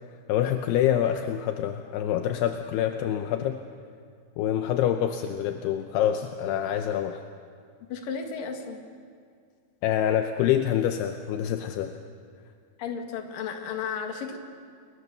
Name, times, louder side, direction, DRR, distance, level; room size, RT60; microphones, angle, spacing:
voice 1, 0.3-3.6 4.4-7.2 9.8-11.9, left 10 dB, 80° left, 6 dB, 2.7 m, -26 dB
voice 2, 7.9-8.8 12.8-14.4, left 6 dB, 55° left, 4 dB, 3.2 m, -33 dB
29.5 x 22.0 x 6.8 m, 2.2 s
omnidirectional pair, 5.2 m